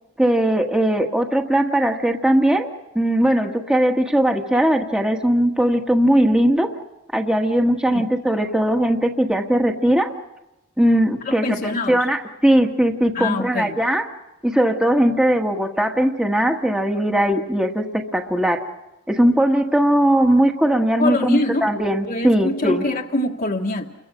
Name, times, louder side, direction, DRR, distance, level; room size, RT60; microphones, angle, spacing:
voice 1, 0.2-2.7 2.9-6.7 7.1-10.1 10.8-11.4 11.9-14.0 14.4-18.6 19.1-22.8, right 1 dB, 5° right, 3 dB, 1.4 m, -19 dB
voice 2, 11.2-12.1 13.1-13.8 21.0-21.7 22.1-23.9, left 2 dB, 45° left, 0 dB, 1.4 m, -24 dB
30.0 x 23.0 x 6.2 m, 0.95 s
head